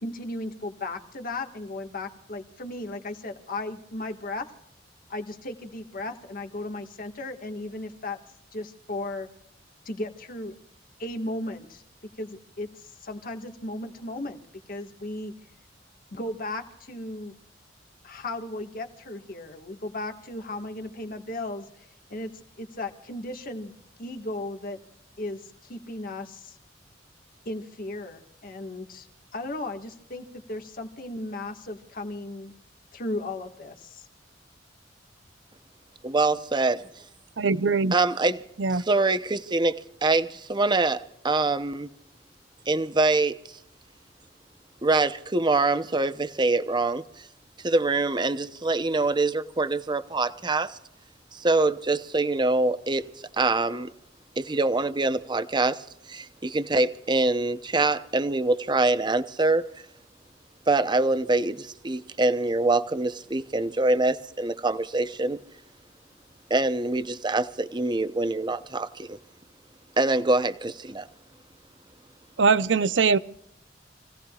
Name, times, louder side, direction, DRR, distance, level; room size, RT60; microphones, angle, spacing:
voice 1, 0.0-4.5 5.1-8.2 8.5-9.3 9.8-10.6 11.0-11.8 12.2-14.4 14.7-15.3 16.1-17.3 18.0-23.7 24.0-24.8 25.2-26.6 27.4-29.1 29.3-32.5 32.9-34.1, left 2 dB, 50° left, 4 dB, 1.7 m, -35 dB
voice 2, 36.0-36.9 37.9-38.4 38.7-41.9 42.7-43.4 44.8-47.3 47.6-50.8 51.3-53.1 53.3-53.9 54.4-59.7 60.7-65.4 66.5-69.2 70.0-71.1, right 2 dB, 25° right, 11 dB, 0.8 m, -24 dB
voice 3, 37.4-37.9 38.6-38.8 72.4-73.2, right 5 dB, 75° right, 15 dB, 0.6 m, -21 dB
28.5 x 17.5 x 2.4 m, 0.76 s
head